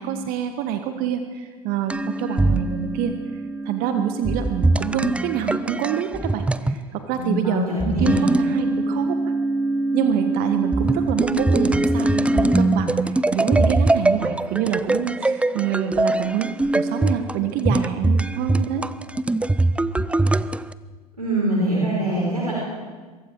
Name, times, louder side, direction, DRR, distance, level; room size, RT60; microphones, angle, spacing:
voice 1, 0.0-3.2 3.6-9.3 9.9-12.9 13.3-16.5 16.7-18.8, right 9 dB, 50° right, 8 dB, 1.5 m, -26 dB
sound 1, 1.9-6.8 7.8-20.7, right 2 dB, 5° right, 0.6 m, -22 dB
voice 2, 7.1-8.2 21.2-22.5, right 1 dB, 90° right, -5 dB, 5.4 m, -23 dB
24.0 x 23.0 x 4.8 m, 1.4 s
figure-of-eight pair, 75°, 19 cm